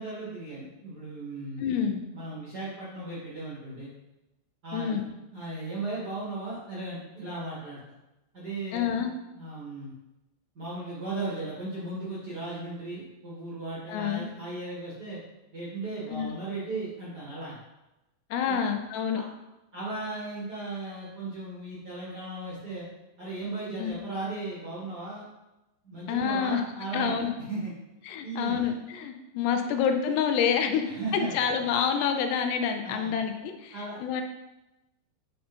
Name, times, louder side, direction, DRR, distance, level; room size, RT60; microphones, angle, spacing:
voice 1, 0.0-1.6 2.1-3.9 4.6-5.0 5.3-7.8 8.3-9.0 9.3-9.9 10.5-15.2 15.5-17.6 18.4-18.6 19.1-19.2 19.7-22.8 23.2-25.2 25.8-27.7 28.2-28.7 29.7-29.8 30.8-31.3 32.8-33.2 33.7-34.0, right 2 dB, 40° right, -7 dB, 1.4 m, -36 dB
voice 2, 1.6-2.0 4.7-5.0 8.7-9.1 13.9-14.3 16.1-16.3 18.3-19.2 23.8-24.0 26.1-26.6 26.9-27.3 28.1-30.9 31.1-33.8 34.0-34.2, left 7 dB, 80° left, 5 dB, 2.7 m, -27 dB
8.9 x 5.2 x 4.4 m, 0.97 s
omnidirectional pair, 5.0 m